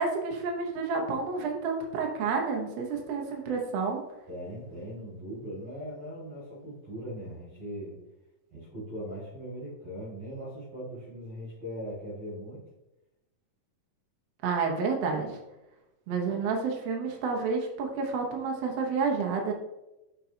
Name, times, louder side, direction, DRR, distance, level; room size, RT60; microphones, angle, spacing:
voice 1, 0.0-4.0 14.4-15.4 16.1-19.5, right 4 dB, 70° right, 1 dB, 1.5 m, -30 dB
voice 2, 4.3-8.0 8.5-12.6, equal, 50° right, -8 dB, 3.4 m, -40 dB
6.7 x 5.3 x 2.8 m, 0.96 s
omnidirectional pair, 3.9 m